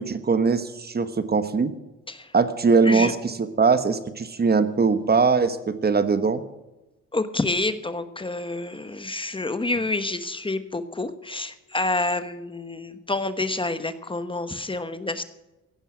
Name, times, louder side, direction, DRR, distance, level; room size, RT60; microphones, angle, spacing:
voice 1, 0.0-1.7 2.3-6.4, right 4 dB, 30° right, 12 dB, 1.2 m, -21 dB
voice 2, 7.1-15.2, left 2 dB, 15° left, 11 dB, 1.1 m, -28 dB
16.5 x 10.5 x 6.2 m, 1.0 s
cardioid pair, 90°, 30 cm